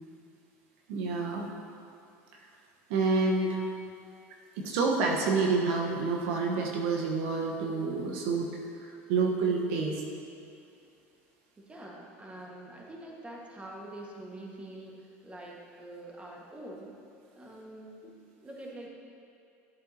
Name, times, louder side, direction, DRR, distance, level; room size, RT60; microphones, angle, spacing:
voice 1, 0.9-1.5 2.9-3.6 4.6-8.5 8.8-10.0, right 4 dB, 75° right, 0 dB, 1.2 m, -28 dB
voice 2, 11.6-17.0 17.3-18.9, right 1 dB, 15° right, -2 dB, 1.6 m, -45 dB
14.0 x 7.5 x 2.9 m, 2.5 s
supercardioid pair, 95°, 7 cm